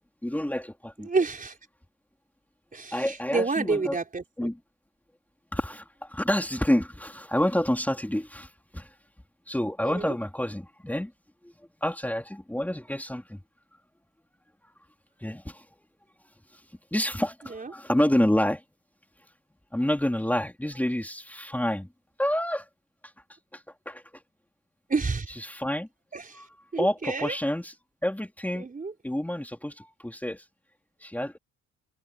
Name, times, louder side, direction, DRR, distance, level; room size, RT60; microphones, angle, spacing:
voice 1, 0.2-1.1 2.9-4.0 4.4-4.6 5.5-8.9 9.5-11.1 11.4-11.5 11.8-13.4 15.2-15.6 16.9-18.6 19.7-21.9 22.2-22.7 23.5-24.0 25.4-25.9 26.8-27.7 28.0-28.7 29.0-30.4 31.0-31.4, left 1 dB, 5° left, 3.6 m, -28 dB
voice 2, 1.0-1.6 2.7-4.5 9.8-10.1 17.5-17.7 24.9-25.3 26.1-26.4 26.7-27.4 28.6-28.9, right 4 dB, 25° right, 4.2 m, -29 dB
cardioid pair, 90°, 30 cm